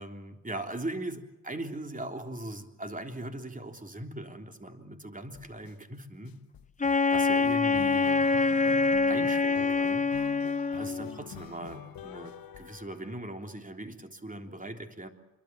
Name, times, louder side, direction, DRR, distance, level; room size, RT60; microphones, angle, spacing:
voice 1, 0.0-6.4 7.1-8.3 9.1-10.4 10.7-15.1, right 1 dB, 25° right, 5 dB, 3.5 m, -40 dB
sound 1, 5.3-5.7 6.2-13.4, left 9 dB, 90° left, 1.2 m, -46 dB
Wind instrument woodwind instrument, 6.8-11.2, left 4 dB, 20° left, 0.8 m, -25 dB
26.0 x 23.5 x 7.4 m, 1.0 s
cardioid pair, 65°, 34 cm